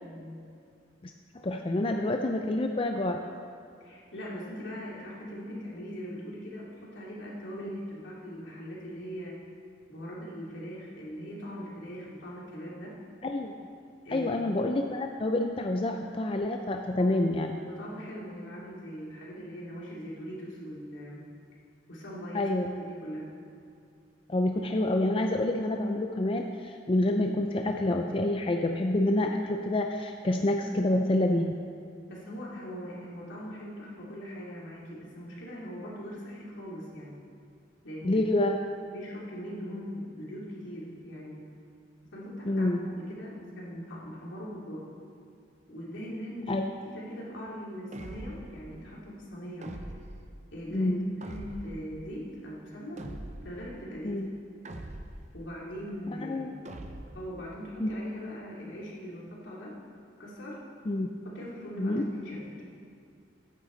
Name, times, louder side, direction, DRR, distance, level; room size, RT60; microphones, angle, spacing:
voice 1, 0.0-0.4 3.8-9.4 9.9-12.9 14.0-14.4 16.9-17.2 17.5-21.2 21.9-22.4 22.8-23.3 32.1-37.1 37.8-38.3 38.9-41.4 42.1-44.9 45.7-46.6 46.9-49.7 50.5-53.0 53.4-54.2 55.3-56.6 57.1-59.8 60.2-60.6 61.2-62.6, equal, 75° left, -5 dB, 3.0 m, -40 dB
voice 2, 1.0-3.2 7.6-7.7 13.2-13.5 14.1-17.6 22.3-22.8 24.3-31.6 38.0-38.6 42.5-42.9 46.5-46.7 50.7-51.1 54.0-54.3 56.2-56.5 57.8-57.9 60.9-61.1 61.8-62.1, left 1 dB, 30° left, 3 dB, 0.4 m, -28 dB
sound 1, 47.9-48.6 49.6-50.2 51.2-51.9 53.0-53.6 54.6-55.3 56.6-57.3, right 1 dB, 35° right, 0.7 m, -42 dB
14.5 x 9.9 x 4.0 m, 2.5 s
head